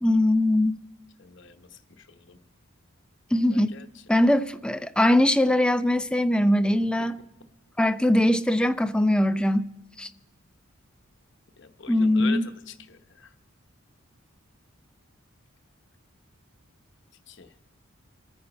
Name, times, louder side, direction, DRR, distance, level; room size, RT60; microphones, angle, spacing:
voice 1, 0.0-0.8 3.3-3.8 4.1-7.2 7.8-9.7 10.0-10.1 11.9-12.4, left 1 dB, 5° left, 0.4 m, -21 dB
voice 2, 1.2-2.4 3.5-4.4 11.6-13.3 17.3-17.5, left 6 dB, 55° left, 0.9 m, -43 dB
27.0 x 9.7 x 4.2 m
head